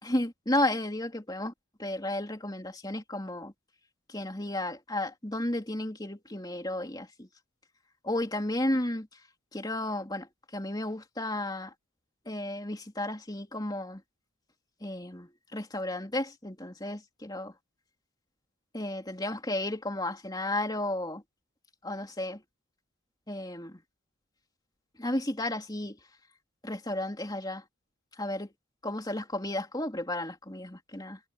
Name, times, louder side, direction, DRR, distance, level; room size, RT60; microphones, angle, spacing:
voice 1, 0.0-1.5 1.8-3.5 4.1-7.3 8.0-9.1 9.5-11.7 12.2-14.0 14.8-17.5 18.7-21.2 21.8-22.4 23.3-23.8 25.0-26.0 26.6-27.6 28.2-28.5 28.8-31.2, left 1 dB, 20° left, 3.1 m, -33 dB
head